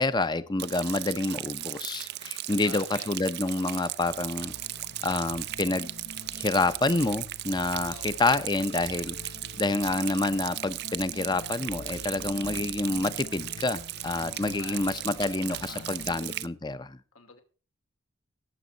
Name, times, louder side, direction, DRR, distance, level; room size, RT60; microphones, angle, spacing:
voice 1, 0.0-4.5 5.0-5.9 6.4-17.0, left 2 dB, 20° left, 14 dB, 0.7 m, -28 dB
Rain, 0.6-16.5, right 15 dB, 50° right, 0.5 m, -37 dB
voice 2, 2.4-3.1 7.9-8.3 14.3-16.2 17.1-17.4, left 4 dB, 85° left, 5 dB, 2.7 m, -48 dB
sound 1, 4.0-16.5, left 3 dB, 55° left, 0.7 m, -46 dB
18.5 x 8.2 x 4.0 m, 0.39 s
head